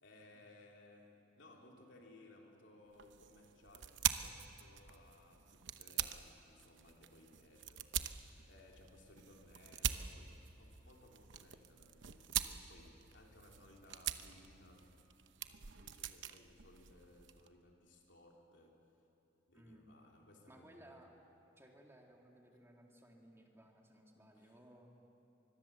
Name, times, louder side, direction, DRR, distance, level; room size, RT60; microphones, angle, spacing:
voice 1, 0.0-14.9 15.7-18.8 19.5-21.3 24.3-24.6, left 1 dB, 70° left, 0 dB, 3.4 m, -62 dB
sound 1, 2.9-17.5, right 10 dB, 70° right, 0.9 m, -44 dB
voice 2, 19.5-19.9 20.5-21.1 21.6-24.9, right 1 dB, 15° right, 1 dB, 2.3 m, -60 dB
24.5 x 21.5 x 7.2 m, 2.9 s
head